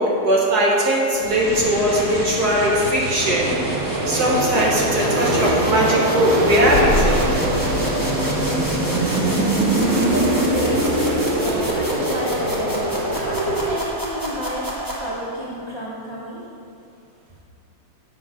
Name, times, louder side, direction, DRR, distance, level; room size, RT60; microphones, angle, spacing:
voice 1, 0.0-3.6 4.1-7.3, equal, 60° right, -4 dB, 2.0 m, -19 dB
sound 1, 1.2-15.5, right 1 dB, 15° right, 1.0 m, -26 dB
sound 2, 3.2-13.8, right 2 dB, 80° right, 1.6 m, -24 dB
sound 3, 6.6-10.1, left 1 dB, 50° left, 1.7 m, -26 dB
voice 2, 9.6-16.4, equal, 15° left, -6 dB, 1.1 m, -31 dB
8.4 x 5.8 x 5.8 m, 2.6 s
omnidirectional pair, 2.0 m